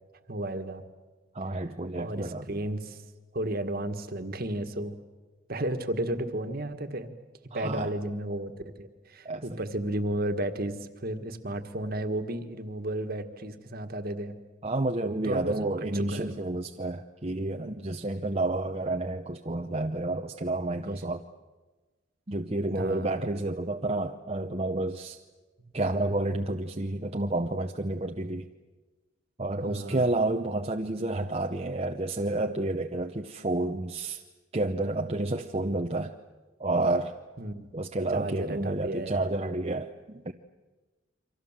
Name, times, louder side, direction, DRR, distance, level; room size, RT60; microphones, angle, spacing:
voice 1, 0.3-0.8 1.9-3.0 3.3-4.9 5.5-7.1 7.5-14.3 15.2-16.3 22.8-23.2 25.6-25.7 29.6-30.1 37.4-37.7 38.1-39.3, right 1 dB, 50° right, 8 dB, 1.8 m, -33 dB
voice 2, 1.3-2.5 7.5-7.9 9.2-9.6 14.6-21.2 22.3-25.2 25.7-28.4 29.4-34.2 34.5-36.1 36.6-37.1 37.7-40.3, right 2 dB, 30° right, 3 dB, 0.9 m, -30 dB
29.0 x 25.0 x 7.5 m, 1.2 s
head